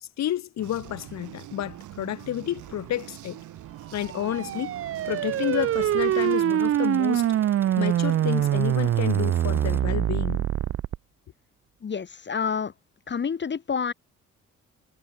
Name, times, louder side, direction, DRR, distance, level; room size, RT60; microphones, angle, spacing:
voice 1, 0.2-3.4 3.9-4.7 5.0-7.3 7.8-10.5, left 12 dB, 60° left, 1.1 m, -30 dB
sound 1, 0.6-6.4, right 14 dB, 80° right, 2.9 m, -43 dB
sound 2, 2.1-9.8, right 1 dB, 5° right, 3.7 m, -49 dB
sound 3, 4.0-11.0, right 11 dB, 50° right, 0.5 m, -24 dB
voice 2, 11.8-12.7 13.1-13.9, left 6 dB, 35° left, 1.6 m, -28 dB
cardioid pair, 90°, 30 cm